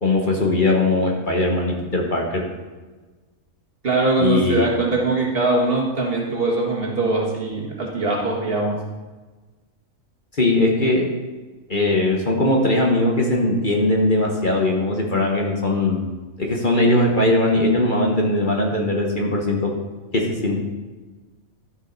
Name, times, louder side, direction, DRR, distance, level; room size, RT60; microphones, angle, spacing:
voice 1, 0.0-2.4 4.2-4.6 10.3-11.1 11.7-19.7 20.1-20.6, left 2 dB, 40° left, -1 dB, 1.4 m, -20 dB
voice 2, 3.8-8.8, right 2 dB, 45° right, -2 dB, 1.9 m, -22 dB
12.5 x 7.4 x 4.1 m, 1.3 s
omnidirectional pair, 1.4 m